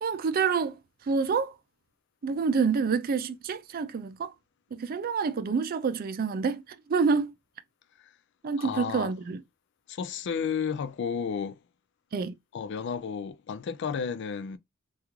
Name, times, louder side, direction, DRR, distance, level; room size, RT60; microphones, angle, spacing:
voice 1, 0.0-0.8 1.1-1.5 2.2-4.3 4.7-6.6 6.9-7.3 8.4-9.4 12.1-12.3, right 5 dB, 45° right, 0.4 m, -27 dB
voice 2, 8.6-9.1 9.9-11.6 12.5-14.6, left 6 dB, 55° left, 0.3 m, -32 dB
3.5 x 2.4 x 3.0 m
head